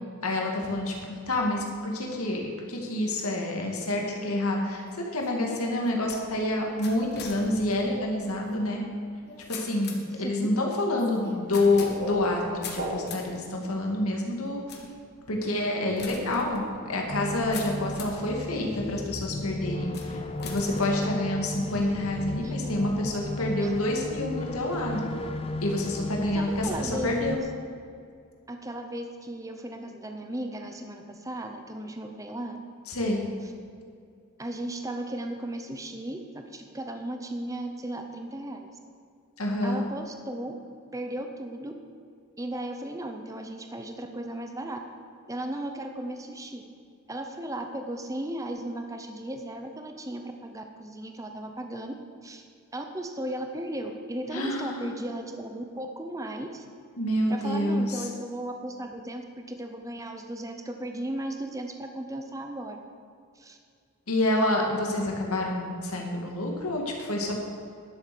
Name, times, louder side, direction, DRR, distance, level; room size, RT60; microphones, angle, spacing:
voice 1, 0.2-1.0 1.3-8.8 9.5-14.6 15.3-25.1 25.6-27.4 32.9-33.3 39.4-39.8 54.3-54.9 57.0-58.1 64.1-67.4, left 1 dB, 85° left, 0 dB, 2.1 m, -28 dB
sound 1, 4.7-18.3 18.9-19.3 19.9-21.8, left 5 dB, 50° left, 1.5 m, -45 dB
voice 2, 10.2-10.5 22.4-22.5 23.6-23.7 26.3-27.5 28.5-32.6 34.4-38.7 39.6-40.5 40.9-41.7 42.4-44.8 45.3-46.6 47.1-51.9 52.2-52.4 52.7-56.7 57.3-62.8 63.4-63.6, right 1 dB, 15° right, 5 dB, 0.7 m, -36 dB
sound 2, 11.5-13.4, equal, 75° right, 2.8 m, -36 dB
sound 3, 17.1-27.4, left 1 dB, 25° left, 0.6 m, -35 dB
11.5 x 7.8 x 7.0 m, 2.3 s
head